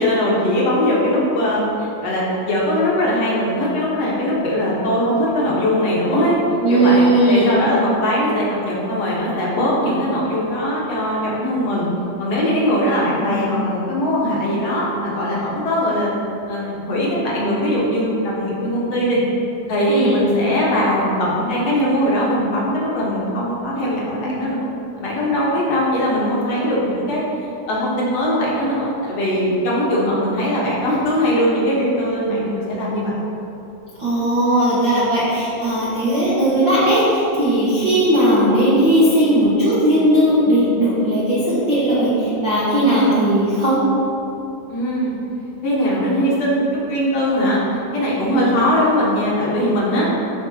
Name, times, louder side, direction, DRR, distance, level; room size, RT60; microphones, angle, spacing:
voice 1, 0.0-6.4 6.7-7.0 7.3-11.9 12.2-16.1 16.5-19.2 19.7-27.2 27.7-33.1 44.7-45.1 45.6-50.1, equal, 60° left, -6 dB, 1.8 m, -20 dB
voice 2, 6.6-7.6 19.9-20.2 34.0-43.8 48.3-48.5, right 1 dB, 90° right, -10 dB, 1.0 m, -17 dB
13.0 x 5.2 x 2.9 m, 2.9 s
omnidirectional pair, 4.4 m